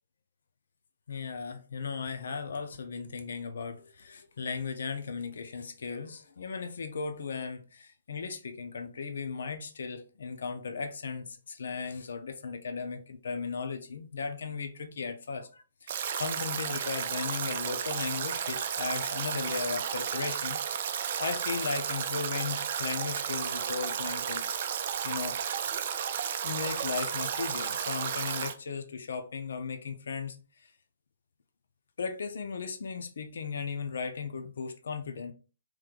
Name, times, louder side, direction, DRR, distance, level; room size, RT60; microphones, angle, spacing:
voice 1, 1.1-20.6 21.2-24.4 25.0-25.4 26.4-30.7 32.0-35.3, left 5 dB, 75° left, 0.5 m, -36 dB
Stream / Drip / Trickle dribble, 15.9-28.5, right 8 dB, 45° right, 0.4 m, -33 dB
3.6 x 3.0 x 2.4 m
hypercardioid pair, 165°, 0 cm